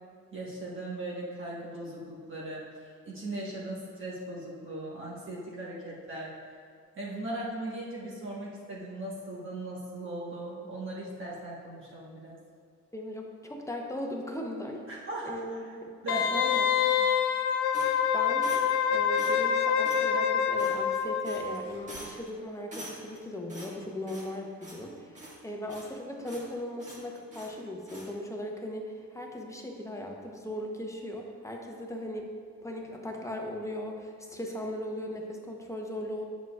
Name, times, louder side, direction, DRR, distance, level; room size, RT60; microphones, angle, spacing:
voice 1, 0.3-6.3 7.0-12.4 14.9-15.3 16.0-16.5 17.0-17.1, right 1 dB, 40° right, -5 dB, 1.3 m, -38 dB
voice 2, 12.9-15.0 15.3-15.9 16.3-16.7 18.1-32.3 32.6-36.3, left 1 dB, 10° left, 1 dB, 0.8 m, -38 dB
Wind instrument woodwind instrument, 16.1-21.6 21.9-22.0, left 7 dB, 85° left, 0.5 m, -26 dB
sound 1, 17.7-18.8 19.2-19.5 19.8-20.1 20.6-21.0 21.2-21.6 21.9-22.3 22.7-23.2 23.5-24.4 24.6-24.9 25.2-26.0 26.3-26.5 26.8-27.6 27.9-28.1, right 1 dB, 25° right, 1.5 m, -45 dB
7.3 x 6.3 x 2.4 m, 2.2 s
cardioid pair, 90°, 30 cm